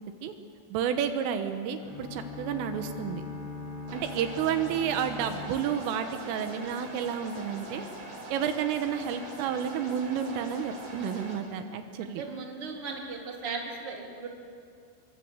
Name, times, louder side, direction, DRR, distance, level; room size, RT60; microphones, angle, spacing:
voice 1, 0.7-3.2 3.9-7.8 8.3-12.2, right 8 dB, 80° right, 7 dB, 3.7 m, -31 dB
sound 1, 1.8-6.8, left 3 dB, 55° left, 8.0 m, -41 dB
sound 2, 3.9-11.3, right 1 dB, 60° right, 8.1 m, -43 dB
voice 2, 12.0-14.3, right 4 dB, 30° right, 0 dB, 3.6 m, -37 dB
29.0 x 23.5 x 8.1 m, 2.4 s
omnidirectional pair, 5.8 m